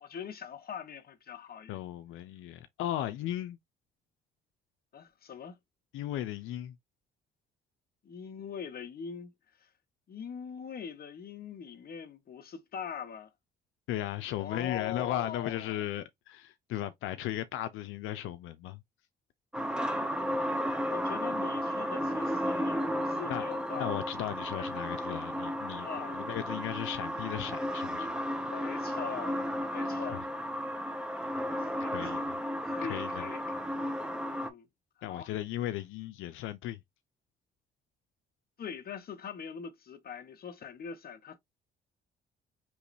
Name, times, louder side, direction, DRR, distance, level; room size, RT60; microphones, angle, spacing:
voice 1, 0.0-1.8 4.9-5.6 8.0-9.3 9.6-9.7 10.1-13.3 14.4-15.8 20.9-24.0 24.5-24.7 25.8-26.3 28.5-30.3 31.6-32.3 32.7-33.7 34.2-34.7 35.1-35.3 38.6-41.4, left 7 dB, 50° left, 1.1 m, -42 dB
voice 2, 1.7-3.6 5.9-6.8 13.9-18.8 23.3-23.5 23.8-25.9 26.1-28.1 30.1-30.2 31.9-32.4 32.9-33.2 35.0-36.8, left 13 dB, 90° left, 0.5 m, -36 dB
sound 1, 19.5-34.5, equal, 5° right, 1.0 m, -33 dB
4.6 x 3.0 x 2.6 m
cardioid pair, 90°, 20 cm